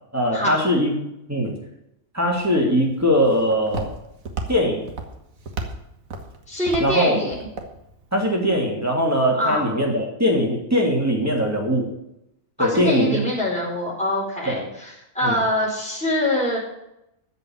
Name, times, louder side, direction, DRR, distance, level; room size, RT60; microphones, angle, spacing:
voice 1, 0.1-0.9 1.3-1.5 2.1-3.9 4.5-4.8 6.8-7.2 8.1-11.9 12.6-13.2 14.5-14.6 15.2-15.4, equal, 10° right, -1 dB, 2.9 m, -21 dB
Walk footsteps, 2.3-8.5, right 3 dB, 85° right, 1.9 m, -35 dB
voice 2, 6.5-7.4 9.4-9.7 12.6-16.6, left 1 dB, 5° left, -4 dB, 4.5 m, -24 dB
14.0 x 5.5 x 9.0 m, 0.83 s
omnidirectional pair, 1.4 m